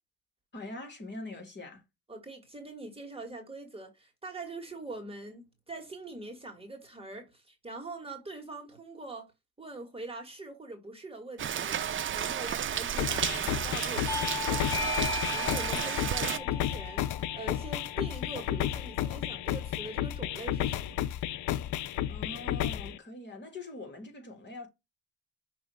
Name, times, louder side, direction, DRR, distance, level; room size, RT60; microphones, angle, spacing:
voice 1, 0.5-1.8 22.1-24.7, left 2 dB, 35° left, 2.8 m, -43 dB
voice 2, 2.1-9.3 9.6-21.0, right 2 dB, 20° right, 1.9 m, -43 dB
Rain, 11.4-16.4, right 9 dB, 40° right, 0.6 m, -32 dB
sound 1, 13.0-23.0, left 12 dB, 75° left, 0.6 m, -32 dB
Bell / Doorbell, 14.1-19.2, left 5 dB, 10° left, 0.6 m, -38 dB
6.1 x 3.0 x 5.6 m
cardioid pair, 90°, 30 cm